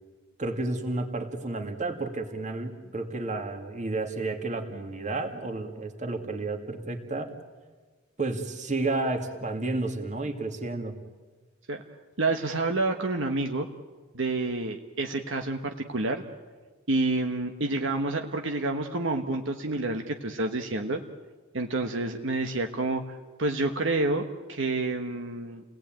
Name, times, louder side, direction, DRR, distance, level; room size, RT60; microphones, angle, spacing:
voice 1, 0.4-7.3 8.2-11.0, right 2 dB, 35° right, 5 dB, 2.4 m, -31 dB
voice 2, 12.2-13.7 14.1-16.2 16.9-21.0 21.5-23.0 23.4-25.6, right 2 dB, 65° right, 4 dB, 1.3 m, -28 dB
29.0 x 19.0 x 9.0 m, 1.4 s
head